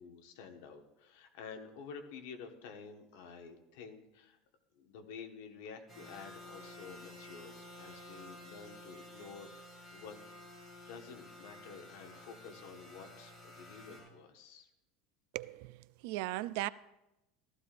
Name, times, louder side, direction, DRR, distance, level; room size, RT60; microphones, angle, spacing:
voice 1, 0.0-4.4 4.7-10.2 10.9-14.7, left 5 dB, 70° left, 1.4 m, -50 dB
sound 1, 5.9-14.0, left 1 dB, 10° left, 4.9 m, -52 dB
voice 2, 15.3-16.7, right 18 dB, 60° right, 0.3 m, -38 dB
14.5 x 13.5 x 2.6 m
cardioid pair, 175°, 0 cm